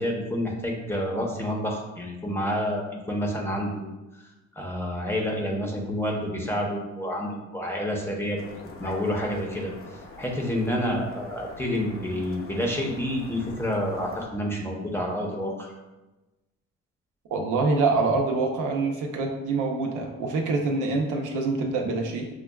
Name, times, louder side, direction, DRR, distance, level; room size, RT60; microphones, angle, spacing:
voice 1, 0.0-3.8 4.6-8.4 8.8-9.7 10.2-15.7, equal, 10° left, -1 dB, 0.8 m, -28 dB
sound 1, 8.3-14.2, left 3 dB, 45° left, 0.7 m, -44 dB
voice 2, 17.3-22.3, right 3 dB, 80° right, 1 dB, 0.7 m, -25 dB
6.2 x 2.3 x 2.3 m, 1.1 s
cardioid pair, 90°, 30 cm